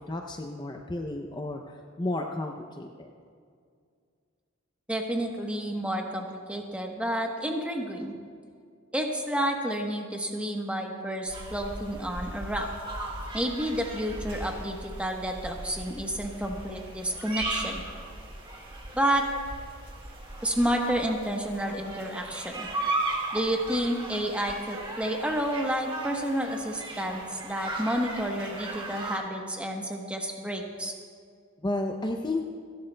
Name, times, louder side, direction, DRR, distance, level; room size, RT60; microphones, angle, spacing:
voice 1, 0.1-3.1 31.6-32.4, left 2 dB, 20° left, 2 dB, 0.5 m, -32 dB
voice 2, 4.9-8.1 8.9-12.7 13.3-17.8 18.9-19.3 20.4-22.7 23.3-30.9, equal, 5° right, 2 dB, 1.0 m, -30 dB
sound 1, 11.3-29.2, right 2 dB, 25° right, 1.8 m, -37 dB
28.5 x 11.5 x 2.2 m, 2.2 s
head